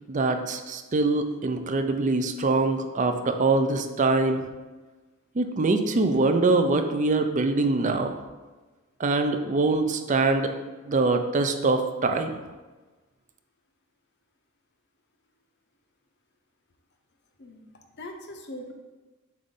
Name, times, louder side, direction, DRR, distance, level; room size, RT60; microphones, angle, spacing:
voice 1, 0.1-4.4 5.4-8.1 9.0-10.5 10.9-12.4, right 3 dB, 35° right, 6 dB, 0.5 m, -24 dB
voice 2, 17.4-18.7, left 1 dB, 55° left, 3 dB, 0.8 m, -41 dB
7.4 x 2.6 x 5.3 m, 1.2 s
head